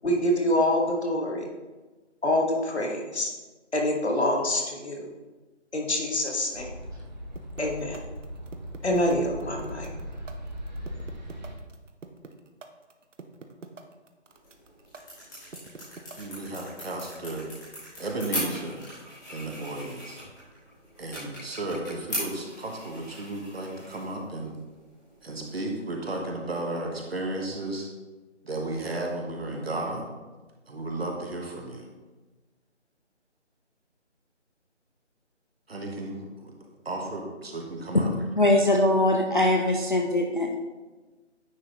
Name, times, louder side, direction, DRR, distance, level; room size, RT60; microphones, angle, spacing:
voice 1, 0.0-1.5 2.2-3.3 3.7-5.1 5.7-6.7 7.6-8.0 8.8-9.9, left 1 dB, 60° left, 1 dB, 1.4 m, -26 dB
sound 1, 6.5-11.6, equal, 35° right, 0.8 m, -39 dB
sound 2, 7.4-16.6, right 5 dB, 80° right, 0.8 m, -45 dB
sound 3, 14.3-25.8, equal, 15° left, 1.6 m, -40 dB
voice 2, 16.2-17.5 18.0-18.8 19.3-20.2 21.0-24.6 25.2-27.9 28.4-30.0 30.7-31.9 35.7-38.1, right 2 dB, 55° right, 1 dB, 1.2 m, -34 dB
voice 3, 38.4-40.6, left 1 dB, 45° left, 1 dB, 0.4 m, -22 dB
9.5 x 3.7 x 3.0 m, 1.2 s
figure-of-eight pair, 170°, 36 cm